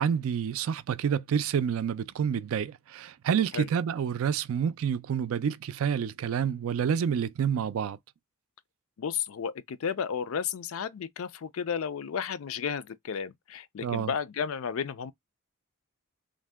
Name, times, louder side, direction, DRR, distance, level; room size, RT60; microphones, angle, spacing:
voice 1, 0.0-8.0 13.8-14.1, right 7 dB, 65° right, 0.3 m, -28 dB
voice 2, 9.0-15.1, left 7 dB, 70° left, 0.4 m, -33 dB
2.6 x 2.1 x 3.4 m
head